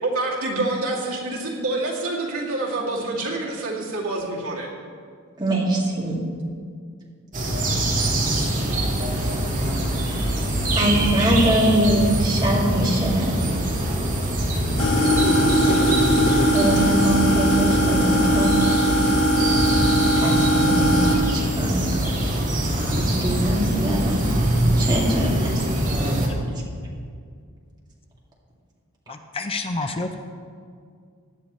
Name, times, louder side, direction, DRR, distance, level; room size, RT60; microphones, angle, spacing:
voice 1, 0.0-4.7, right 2 dB, 70° right, -4 dB, 2.4 m, -27 dB
voice 2, 5.4-6.1 10.7-13.2 16.5-18.6 20.2-21.8 23.0-24.2 24.8-25.6, right 1 dB, 20° right, -5 dB, 2.3 m, -23 dB
sound 1, 7.3-26.3, right 1 dB, 35° right, 2.1 m, -23 dB
sound 2, 14.8-21.2, equal, 65° left, 2.2 m, -20 dB
voice 3, 29.1-30.2, left 3 dB, 25° left, 6 dB, 0.5 m, -28 dB
17.0 x 11.0 x 3.1 m, 2.2 s
head